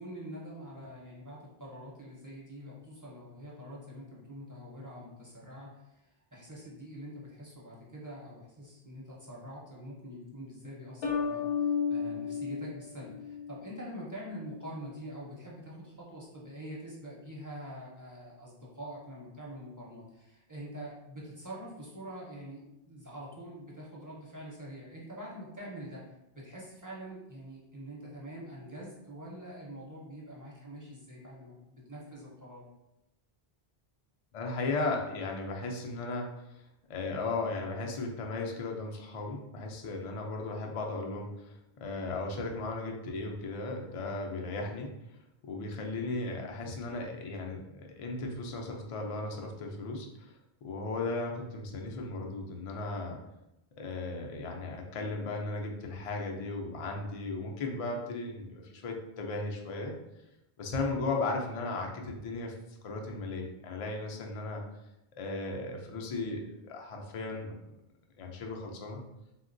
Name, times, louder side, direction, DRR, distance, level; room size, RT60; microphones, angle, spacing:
voice 1, 0.0-26.0 26.3-32.7, equal, 25° right, -5 dB, 0.5 m, -45 dB
sound 1, 11.0-13.7, left 6 dB, 75° left, 0.8 m, -33 dB
voice 2, 34.3-36.6 36.9-45.0 45.4-50.4 50.6-53.2 53.8-59.9 60.6-62.5 62.8-64.6 65.2-67.6 68.2-69.0, left 3 dB, 50° left, 1 dB, 0.4 m, -36 dB
3.5 x 2.2 x 2.5 m, 0.90 s
omnidirectional pair, 1.0 m